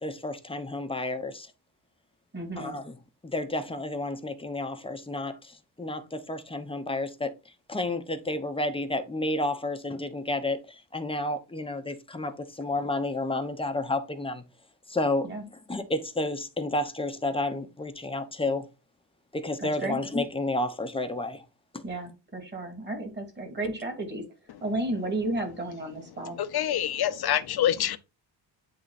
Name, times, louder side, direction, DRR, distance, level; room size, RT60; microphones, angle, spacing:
voice 1, 0.0-1.5 2.6-2.9 3.2-7.3 7.7-14.4 14.9-15.3 15.7-18.7 19.3-21.4 21.7-21.8, left 2 dB, 10° left, 0.9 m, -31 dB
voice 2, 2.3-2.7 15.2-15.4 19.6-20.0 21.8-24.3 24.6-26.4, right 2 dB, 25° right, 2.7 m, -33 dB
voice 3, 26.1-28.0, left 11 dB, 55° left, 0.8 m, -27 dB
9.3 x 3.8 x 4.2 m
wide cardioid pair, 160°, 45 cm